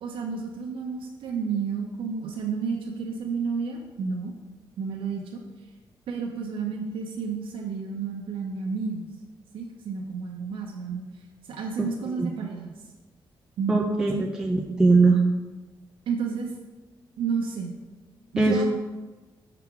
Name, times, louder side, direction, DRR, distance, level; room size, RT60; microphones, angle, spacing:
voice 1, 0.0-4.3 4.8-5.4 6.1-9.1 9.5-11.0 11.4-12.8 13.6-13.8 14.1-14.3 16.1-16.5 17.2-17.7 18.3-18.6, right 5 dB, 75° right, 0 dB, 0.7 m, -31 dB
voice 2, 13.7-15.2 18.4-18.6, right 3 dB, 5° right, 0 dB, 0.4 m, -21 dB
5.8 x 5.8 x 3.7 m, 1.2 s
wide cardioid pair, 175°, 9 cm